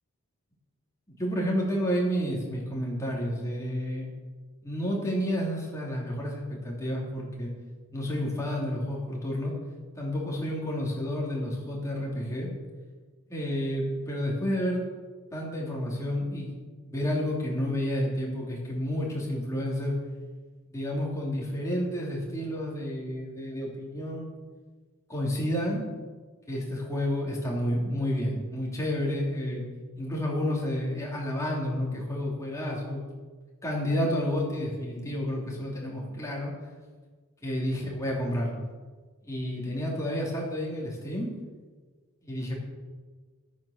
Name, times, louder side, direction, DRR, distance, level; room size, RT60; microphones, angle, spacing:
voice 1, 1.2-4.1 4.6-7.5 7.9-9.5 10.0-12.5 13.3-14.8 15.3-16.5 16.8-20.0 20.7-24.2 25.1-25.9 26.5-29.6 29.9-33.0 33.6-36.5 37.4-38.6 39.2-41.3 42.2-42.5, equal, 15° left, -3 dB, 3.2 m, -30 dB
12.0 x 8.9 x 6.7 m, 1.4 s
head